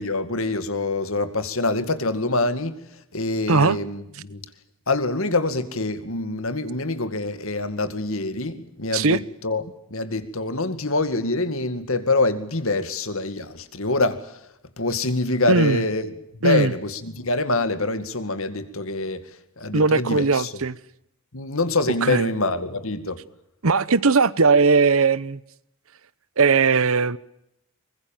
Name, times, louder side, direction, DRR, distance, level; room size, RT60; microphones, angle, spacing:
voice 1, 0.0-2.8 3.1-4.4 4.9-9.6 9.9-14.4 14.8-20.5 21.3-23.2, left 2 dB, 65° left, 2.2 m, -25 dB
voice 2, 3.5-3.8 8.9-9.2 15.5-15.8 16.4-16.7 19.7-20.8 22.0-22.3 23.6-25.4 26.4-27.2, right 4 dB, 70° right, 0.8 m, -19 dB
23.5 x 21.5 x 7.3 m
head